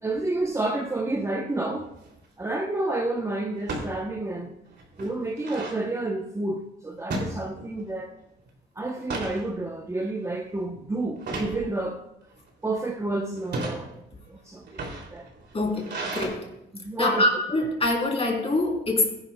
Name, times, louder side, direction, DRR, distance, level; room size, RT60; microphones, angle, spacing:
voice 1, 0.0-1.9 2.4-4.6 5.0-8.1 8.8-12.0 12.6-14.0 14.3-15.3 16.7-17.3, right 2 dB, 15° right, 0.8 m, -30 dB
sound 1, 1.8-2.2 3.6-3.9 4.4-4.5 4.8-5.8 7.1-7.9 8.2-8.5 8.9-9.4 10.0-10.3 11.2-11.6 12.3-12.8 13.4-13.8 14.6-16.3, right 2 dB, 60° right, 2.7 m, -33 dB
voice 2, 15.5-15.9 16.1-16.4 17.0-19.0, left 2 dB, 30° left, 3.1 m, -24 dB
16.0 x 10.5 x 2.2 m
cardioid pair, 90°, 20 cm